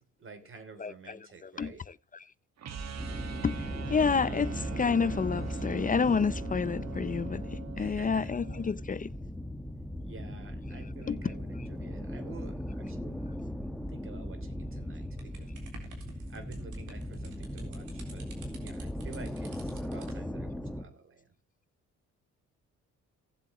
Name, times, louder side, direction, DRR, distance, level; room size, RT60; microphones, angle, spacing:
voice 1, 0.0-1.8 7.8-8.3 10.0-11.5 11.8-13.2 13.9-15.1 15.3-15.5 16.3-18.3 18.6-21.2, right 4 dB, 45° right, 3.1 m, -50 dB
voice 2, 0.8-2.3 3.4-9.1 10.8-11.7, left 5 dB, 25° left, 0.6 m, -30 dB
sound 1, 2.6-8.7, right 5 dB, 60° right, 1.6 m, -40 dB
sound 2, 3.0-20.8, equal, ahead, 1.6 m, -38 dB
sound 3, 15.2-20.2, right 4 dB, 85° right, 3.8 m, -51 dB
18.0 x 7.6 x 3.0 m
cardioid pair, 90°, 30 cm